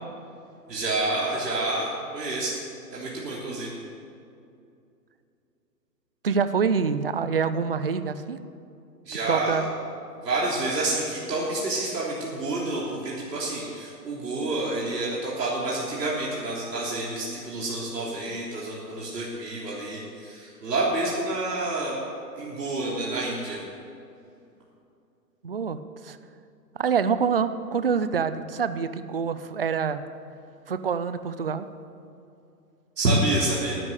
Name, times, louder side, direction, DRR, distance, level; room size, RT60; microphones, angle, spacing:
voice 1, 0.7-2.6 2.9-3.8 9.1-9.7 10.2-22.0 22.4-23.6 33.0-33.8, right 2 dB, 80° right, -5 dB, 3.4 m, -28 dB
voice 2, 6.2-8.4 9.3-9.6 25.4-25.8 26.0-26.2 26.8-30.0 30.7-31.7, right 6 dB, 40° right, 12 dB, 0.4 m, -26 dB
12.0 x 11.0 x 8.1 m, 2.5 s
hypercardioid pair, 155°, 49 cm